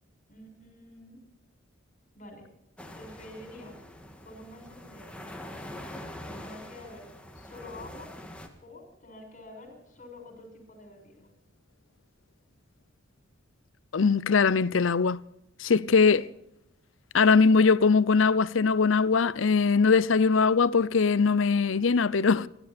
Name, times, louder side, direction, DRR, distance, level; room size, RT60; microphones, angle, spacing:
voice 1, 0.3-1.2 2.1-2.5 2.9-3.8 4.2-5.2 6.4-8.1 8.6-11.3 15.9-16.3, left 1 dB, 40° left, 6.3 m, -47 dB
sound 1, 2.8-8.5, left 1 dB, 5° left, 2.0 m, -44 dB
voice 2, 13.9-15.2 15.6-16.2 17.1-22.5, left 5 dB, 85° left, 0.6 m, -21 dB
27.5 x 12.0 x 4.3 m
head